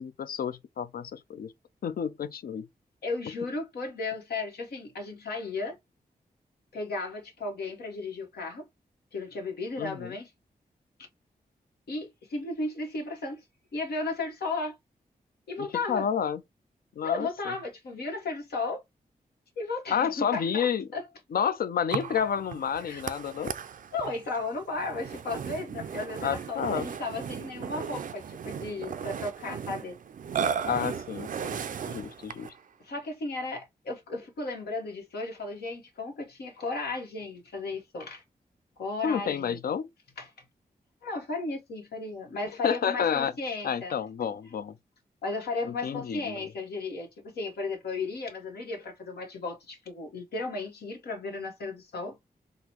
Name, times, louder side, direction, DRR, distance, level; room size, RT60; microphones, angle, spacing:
voice 1, 0.0-1.5 1.8-2.7 9.8-10.2 15.6-16.4 17.0-17.3 19.9-20.9 21.3-23.5 26.2-26.9 30.7-32.5 39.0-39.9 42.6-44.8 45.6-46.5, left 7 dB, 70° left, 0.5 m, -30 dB
voice 2, 3.0-5.8 6.7-8.7 9.1-10.3 11.9-13.4 13.7-14.8 15.5-16.1 17.0-18.8 19.6-20.7 20.9-21.0 22.8-23.0 23.9-30.0 32.8-38.2 38.8-39.6 40.2-40.3 41.0-43.9 45.2-52.2, left 3 dB, 90° left, 1.1 m, -34 dB
Burping eructation, 21.9-32.6, right 7 dB, 55° right, 0.4 m, -36 dB
3.8 x 2.1 x 2.9 m
cardioid pair, 55°, 16 cm